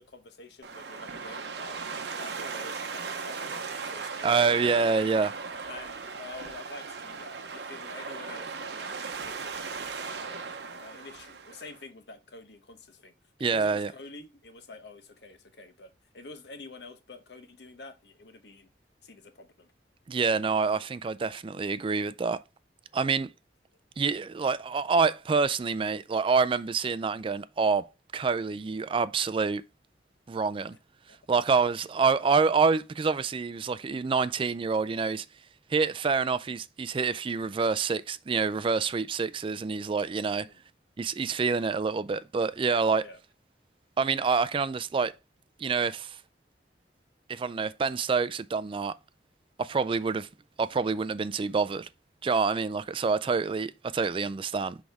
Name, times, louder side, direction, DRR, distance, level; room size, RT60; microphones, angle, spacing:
voice 1, 0.0-1.9 2.1-5.1 5.6-13.1 13.4-18.7 19.0-19.7 31.1-31.2 40.4-40.6 43.0-43.2, left 3 dB, 70° left, 1.0 m, -48 dB
sound 1, 0.6-11.8, right 5 dB, 70° right, 0.8 m, -38 dB
voice 2, 4.2-5.3 13.4-13.9 20.1-22.4 22.9-23.3 24.0-27.9 28.1-29.6 30.3-30.8 31.3-35.2 35.7-40.5 41.0-43.1 44.0-45.1 45.6-46.2 47.3-48.9 49.6-50.3 50.6-51.9 52.2-54.8, right 5 dB, 30° right, 0.3 m, -27 dB
6.3 x 4.9 x 3.4 m
head